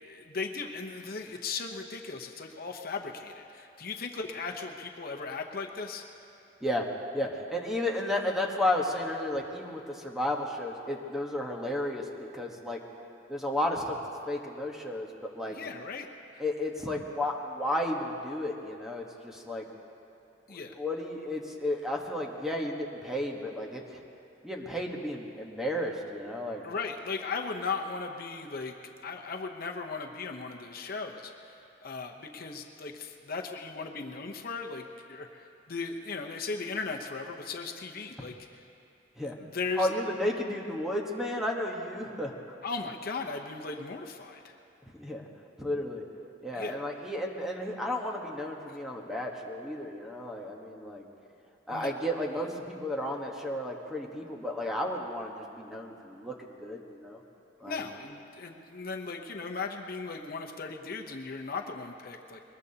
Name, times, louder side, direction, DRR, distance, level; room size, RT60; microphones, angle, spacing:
voice 1, 0.0-6.0 15.5-16.1 20.5-20.7 26.6-28.7 29.0-31.5 31.8-38.3 39.4-39.9 42.6-44.5 46.5-46.8 48.7-48.8 51.7-51.9 57.7-62.4, left 4 dB, 55° left, 3 dB, 0.9 m, -37 dB
voice 2, 7.1-12.0 12.3-12.8 13.3-14.0 14.3-15.1 15.3-15.5 16.4-19.6 20.8-24.0 24.4-26.6 39.2-39.4 39.8-42.3 45.0-45.3 45.6-46.0 46.4-51.0 51.7-57.2 57.6-57.8, left 1 dB, ahead, 0 dB, 1.3 m, -33 dB
22.5 x 20.5 x 2.9 m, 2.7 s
head